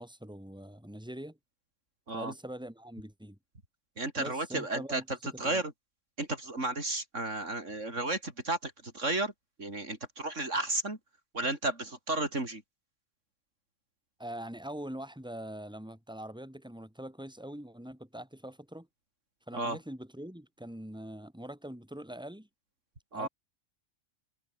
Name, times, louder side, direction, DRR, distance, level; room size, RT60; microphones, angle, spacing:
voice 1, 0.0-1.4 2.1-3.4 4.2-5.6 14.2-18.9 19.5-22.5 23.1-23.3, right 1 dB, 5° right, 4.8 m, -43 dB
voice 2, 4.0-5.0 5.4-5.7 6.2-9.3 9.6-11.0 11.3-12.6 19.5-19.8 23.1-23.3, right 2 dB, 70° right, 5.0 m, -33 dB
omnidirectional pair, 1.3 m